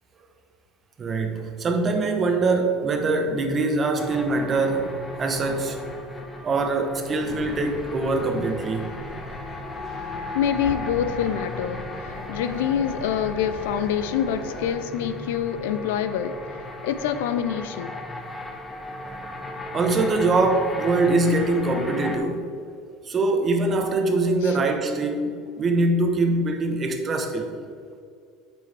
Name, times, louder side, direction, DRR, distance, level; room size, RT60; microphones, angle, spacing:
voice 1, 1.0-5.8 6.4-9.0 19.7-22.5 23.0-27.5, right 2 dB, 35° right, 5 dB, 1.0 m, -23 dB
sound 1, 4.0-22.2, left 2 dB, 15° left, 1.1 m, -36 dB
sound 2, 7.2-14.7, equal, 40° left, 1.9 m, -40 dB
voice 2, 10.3-16.4 16.8-17.9 24.4-24.6, left 9 dB, 85° left, 11 dB, 0.4 m, -26 dB
8.6 x 6.0 x 3.4 m, 2.4 s
supercardioid pair, 100°, 0 cm